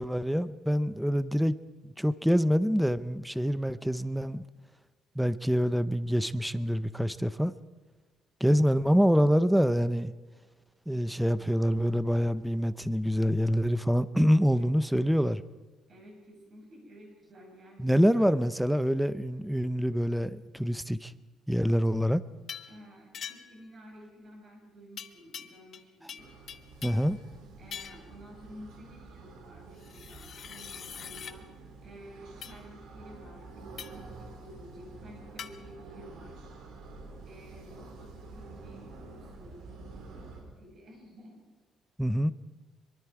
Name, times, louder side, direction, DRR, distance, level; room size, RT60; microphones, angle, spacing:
voice 1, 0.0-1.6 1.8-4.4 5.2-7.5 8.4-10.1 10.9-15.4 17.8-21.1 21.5-22.2 26.8-27.2 42.0-42.3, equal, ahead, 0.5 m, -26 dB
voice 2, 15.9-18.3 22.7-26.3 27.6-31.6 31.8-33.5 33.9-36.4 37.3-40.3 40.6-41.4, equal, 35° right, 6.2 m, -51 dB
sound 1, 22.5-22.8 23.1-23.6 25.0-25.8 26.1-27.1 27.7-28.1 29.8-31.4 32.4-32.6 33.8-34.1 35.4-35.5, left 8 dB, 40° left, 1.2 m, -43 dB
sound 2, 26.2-40.4, right 3 dB, 70° right, 4.7 m, -48 dB
24.5 x 23.0 x 4.8 m
cardioid pair, 170°, 0 cm